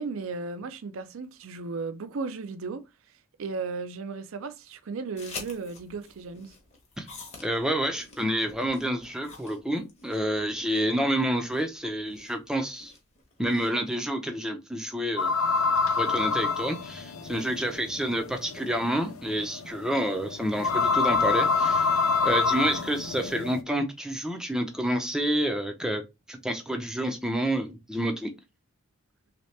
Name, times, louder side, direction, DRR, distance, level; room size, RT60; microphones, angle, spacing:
voice 1, 0.0-2.8 3.4-6.5, right 4 dB, 65° right, 0.4 m, -35 dB
sound 1, 5.2-13.9, left 3 dB, 30° left, 0.9 m, -47 dB
voice 2, 7.4-12.9 13.4-15.3 16.0-28.3, right 1 dB, 5° right, 0.5 m, -29 dB
sound 2, 15.2-23.6, left 4 dB, 65° left, 0.5 m, -26 dB
3.2 x 2.9 x 3.1 m
head